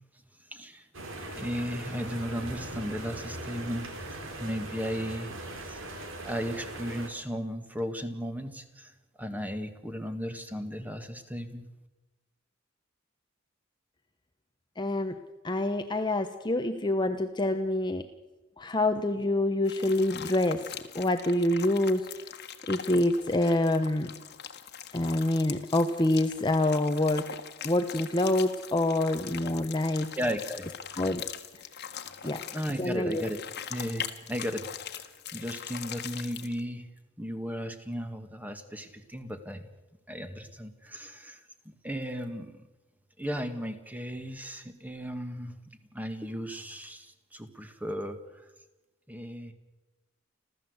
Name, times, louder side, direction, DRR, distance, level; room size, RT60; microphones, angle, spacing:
voice 1, 0.5-0.9 1.4-5.8 6.3-8.9 9.2-11.6 30.2-31.0 32.1-33.4 33.7-35.0 35.3-36.9 37.2-39.7 40.1-42.7 43.2-45.5 45.9-48.5 49.1-49.5, equal, 10° right, 8 dB, 1.9 m, -36 dB
sound 1, 0.9-7.1, right 2 dB, 70° right, 3.8 m, -40 dB
voice 2, 14.8-15.2 15.4-18.0 18.6-20.6 20.9-22.1 22.7-24.1 24.9-27.3 27.6-30.2 31.0-31.2 32.2-32.4 32.8-33.2, left 1 dB, 20° left, 7 dB, 1.0 m, -26 dB
sound 2, 19.7-36.6, left 8 dB, 55° left, 1.6 m, -42 dB
30.0 x 13.5 x 8.1 m, 1.1 s
head